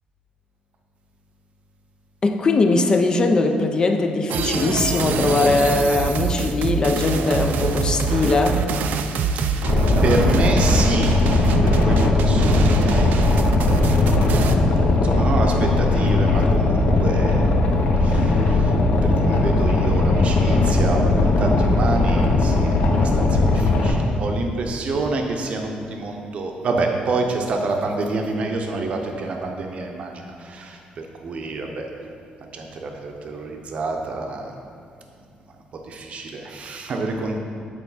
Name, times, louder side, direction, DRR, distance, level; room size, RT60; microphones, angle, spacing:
voice 1, 2.2-8.7, left 3 dB, 25° left, 6 dB, 0.4 m, -20 dB
sound 1, 4.3-14.5, right 5 dB, 70° right, 0.4 m, -24 dB
voice 2, 9.3-11.1 11.6-13.7 14.8-17.5 18.0-18.7 19.0-31.9 32.5-34.5 35.9-37.4, right 3 dB, 45° right, 2 dB, 0.7 m, -28 dB
Boat Water vehicle, 9.6-23.9, left 2 dB, 60° left, 0.7 m, -18 dB
8.3 x 4.6 x 4.0 m, 2.4 s
cardioid pair, 170°, 3 cm